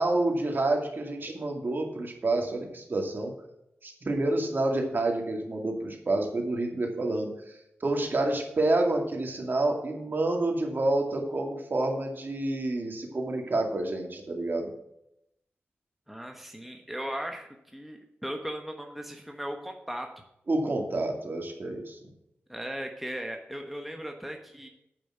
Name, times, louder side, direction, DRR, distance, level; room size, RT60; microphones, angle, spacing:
voice 1, 0.0-3.3 3.8-14.7 20.5-22.0, right 2 dB, 50° right, 2 dB, 2.2 m, -28 dB
voice 2, 16.1-20.1 22.5-24.7, equal, 5° right, 3 dB, 1.2 m, -37 dB
8.8 x 5.3 x 7.5 m, 0.81 s
cardioid pair, 60°, 4 cm